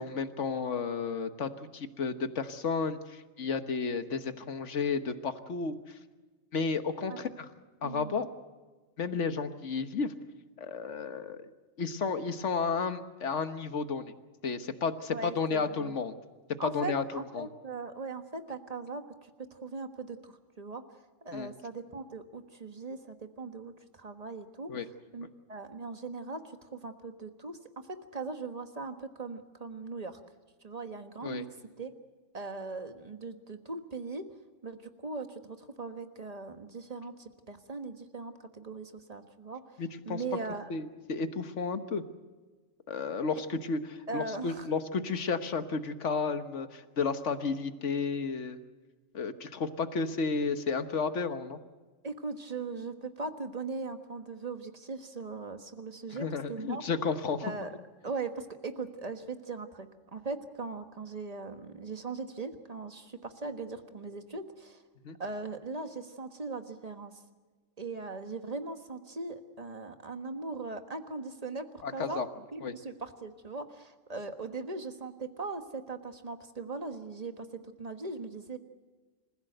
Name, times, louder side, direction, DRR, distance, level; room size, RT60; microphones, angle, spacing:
voice 1, 0.0-5.8 6.5-7.5 7.8-8.3 9.0-10.1 10.6-11.5 11.8-14.1 14.4-16.1 16.6-17.0 17.3-17.5 21.3-21.5 24.7-24.9 31.2-31.4 39.8-40.2 40.7-42.0 42.9-48.6 49.1-51.6 56.1-57.5 65.0-65.2 71.8-72.3 72.6-72.7, left 5 dB, 65° left, 10 dB, 1.5 m, -32 dB
voice 2, 7.8-8.2 15.1-16.0 16.6-20.8 21.2-24.7 25.1-30.2 30.6-31.5 31.8-31.9 32.3-34.2 34.6-40.7 44.1-44.7 52.0-56.9 57.4-57.7 58.0-64.8 65.2-67.1 67.8-72.3 72.5-78.6, right 3 dB, 30° right, 7 dB, 1.5 m, -40 dB
27.5 x 15.5 x 7.9 m, 1.3 s
omnidirectional pair, 1.4 m